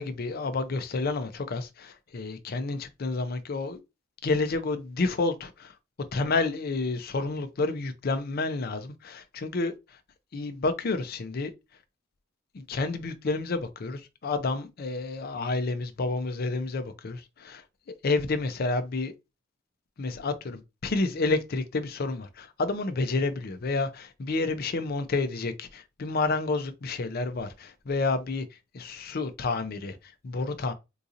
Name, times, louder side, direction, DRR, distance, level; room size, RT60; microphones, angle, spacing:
voice 1, 0.0-3.8 4.2-5.7 6.1-9.7 10.3-11.5 12.5-17.6 17.9-19.1 20.0-28.4 28.7-30.7, left 3 dB, 50° left, 0.5 m, -30 dB
3.8 x 2.8 x 2.5 m
head